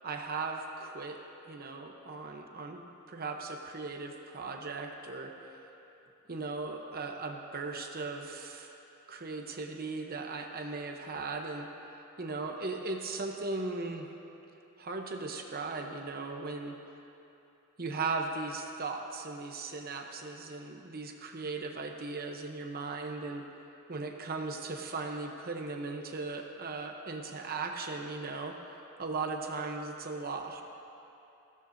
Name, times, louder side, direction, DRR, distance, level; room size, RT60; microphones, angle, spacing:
voice 1, 0.0-1.2 1.5-5.6 6.3-8.7 9.1-11.7 12.2-14.1 14.8-16.8 17.8-23.4 23.9-28.6 29.0-30.6, right 3 dB, 45° right, 3 dB, 0.9 m, -37 dB
20.0 x 15.5 x 2.7 m, 2.9 s
head